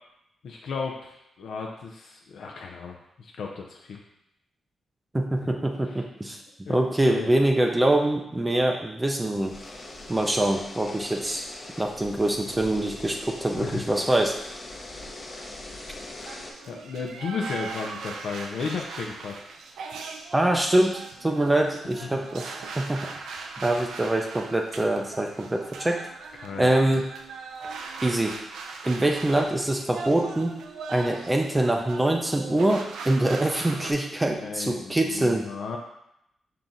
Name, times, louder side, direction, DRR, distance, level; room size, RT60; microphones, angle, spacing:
voice 1, 0.4-4.0 5.4-5.5 5.9-6.0 6.7-7.3 13.6-13.8 16.7-19.3 22.0-22.2 26.4-26.7 34.4-35.8, left 5 dB, 75° left, 0 dB, 0.5 m, -34 dB
voice 2, 5.1-9.6 10.1-11.4 11.8-14.4 20.3-23.1 23.6-26.0 26.6-27.0 28.0-28.4 28.8-30.5 30.9-35.5, right 1 dB, 20° right, 2 dB, 0.5 m, -24 dB
sound 1, 9.3-16.5, left 2 dB, 45° left, 0.9 m, -41 dB
sound 2, 16.2-33.9, right 4 dB, 90° right, 0.4 m, -40 dB
5.7 x 2.4 x 3.9 m, 0.80 s
cardioid pair, 85°, 0 cm